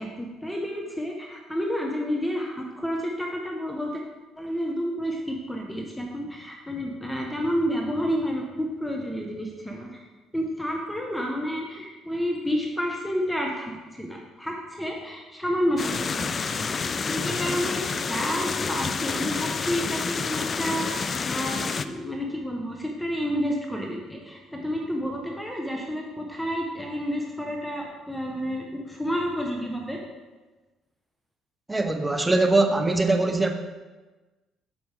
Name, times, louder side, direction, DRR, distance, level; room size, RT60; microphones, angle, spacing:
voice 1, 0.0-4.0 4.4-10.0 10.3-30.0, equal, 5° left, 0 dB, 1.1 m, -30 dB
sound 1, 15.8-21.8, left 5 dB, 40° left, 0.4 m, -29 dB
voice 2, 31.7-33.5, right 2 dB, 15° right, 6 dB, 0.6 m, -22 dB
8.0 x 7.1 x 3.5 m, 1.2 s
cardioid pair, 90°, 0 cm